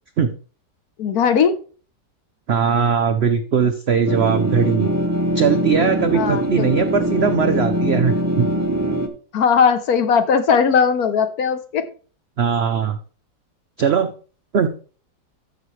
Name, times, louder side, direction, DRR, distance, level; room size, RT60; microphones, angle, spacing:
voice 1, 1.0-1.5 6.1-6.7 9.3-11.9, left 6 dB, 60° left, 1.2 m, -18 dB
voice 2, 2.5-4.9 5.3-8.5 12.4-13.0 13.8-14.1 14.5-14.7, right 6 dB, 75° right, 0.6 m, -19 dB
sound 1, 4.1-9.1, right 1 dB, 20° right, 0.4 m, -22 dB
13.5 x 5.9 x 3.2 m
omnidirectional pair, 1.9 m